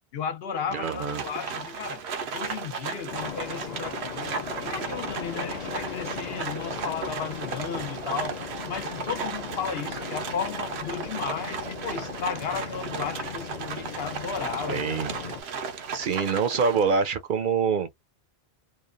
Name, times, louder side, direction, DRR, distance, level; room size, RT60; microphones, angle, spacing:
voice 1, 0.1-2.0 2.3-4.4 4.6-8.4 8.7-15.0, left 7 dB, 75° left, 0.9 m, -34 dB
voice 2, 0.7-1.2 14.7-15.1 15.9-17.9, right 5 dB, 60° right, 0.7 m, -25 dB
Livestock farm animals working animals, 0.8-17.1, right 5 dB, 90° right, 0.9 m, -35 dB
sound 1, 3.1-15.4, left 7 dB, 50° left, 0.6 m, -38 dB
3.0 x 2.2 x 2.4 m
omnidirectional pair, 1.1 m